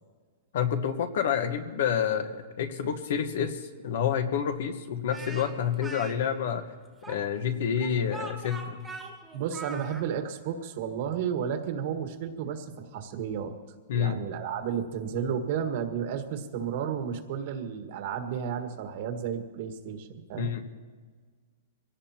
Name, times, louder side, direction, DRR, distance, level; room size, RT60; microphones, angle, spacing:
voice 1, 0.5-6.6 7.1-8.8 13.9-14.2 20.4-20.7, left 8 dB, 65° left, 8 dB, 1.3 m, -28 dB
Speech, 5.1-6.1 7.0-10.0, right 3 dB, 5° right, 1.5 m, -41 dB
voice 2, 9.3-13.5 13.9-20.5, right 8 dB, 50° right, 6 dB, 1.5 m, -32 dB
23.5 x 17.0 x 2.9 m, 1.5 s
hypercardioid pair, 160°, 0 cm